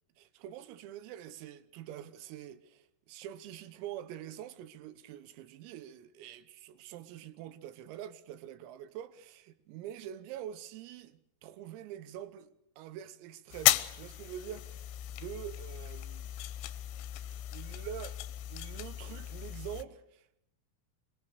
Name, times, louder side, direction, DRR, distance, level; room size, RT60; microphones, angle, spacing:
voice 1, 0.2-16.3 17.5-18.2 18.5-20.3, right 11 dB, 85° right, 3.9 m, -45 dB
sound 1, 13.5-19.8, left 14 dB, 85° left, 3.8 m, -35 dB
25.5 x 22.5 x 6.6 m
omnidirectional pair, 5.9 m